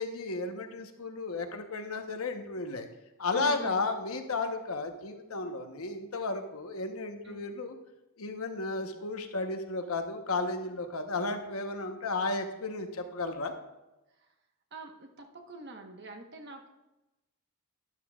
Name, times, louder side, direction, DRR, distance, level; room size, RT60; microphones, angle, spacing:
voice 1, 0.0-2.9 3.2-7.7 8.2-13.5, left 3 dB, 70° left, 6 dB, 1.0 m, -33 dB
voice 2, 3.3-3.8 7.2-7.4 14.2-14.3 14.7-16.7, right 2 dB, 50° right, 3 dB, 1.2 m, -45 dB
12.0 x 11.0 x 2.4 m, 1.0 s
head